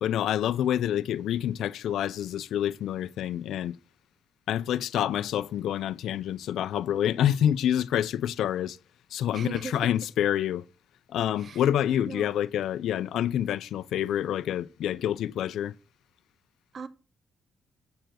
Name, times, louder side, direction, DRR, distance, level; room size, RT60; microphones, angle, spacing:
voice 1, 0.0-3.8 4.5-8.8 9.1-10.6 11.1-15.7, left 10 dB, 85° left, 0.4 m, -27 dB
voice 2, 9.3-9.9 11.4-11.6 12.1-12.3 16.7-16.9, right 6 dB, 55° right, 0.8 m, -38 dB
7.7 x 6.9 x 7.6 m
cardioid pair, 85°, 0 cm